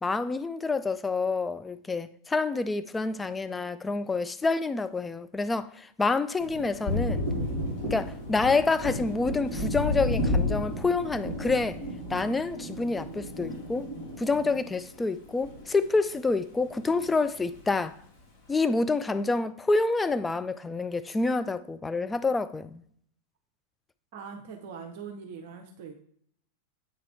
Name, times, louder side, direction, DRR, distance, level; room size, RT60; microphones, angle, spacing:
voice 1, 0.0-7.2 7.8-11.8 12.1-13.9 14.2-18.0 18.5-22.8, left 3 dB, 10° left, 0.3 m, -28 dB
Thunder, 6.4-16.2 16.5-17.6, left 1 dB, 50° left, 2.8 m, -32 dB
voice 2, 24.1-26.0, right 6 dB, 50° right, 0.8 m, -42 dB
8.9 x 3.7 x 3.3 m
figure-of-eight pair, 90°, 0 cm